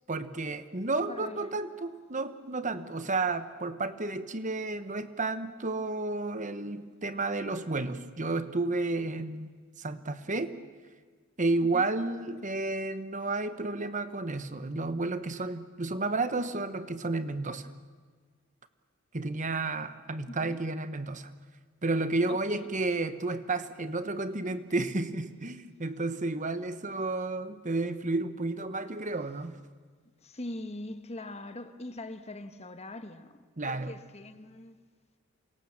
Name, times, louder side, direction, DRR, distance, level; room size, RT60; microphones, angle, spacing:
voice 1, 0.1-9.5 9.8-10.6 11.4-17.7 19.1-21.3 21.8-29.5 33.6-33.9, right 2 dB, 35° right, 1.2 m, -32 dB
voice 2, 1.1-1.7 11.7-11.9 20.3-20.6 22.3-22.7 30.2-34.8, left 2 dB, 30° left, 1.3 m, -42 dB
28.5 x 24.5 x 7.4 m
head